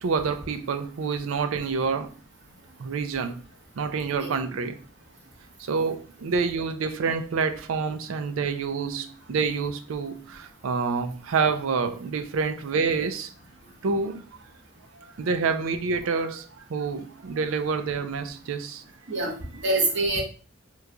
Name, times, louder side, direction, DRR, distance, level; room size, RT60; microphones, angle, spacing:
voice 1, 0.0-2.1 2.8-3.4 3.8-4.8 5.6-13.3 13.8-14.3 15.0-18.8, right 5 dB, 85° right, 0.4 m, -27 dB
voice 2, 19.1-20.2, right 2 dB, 60° right, 1.0 m, -25 dB
3.0 x 2.2 x 3.6 m
head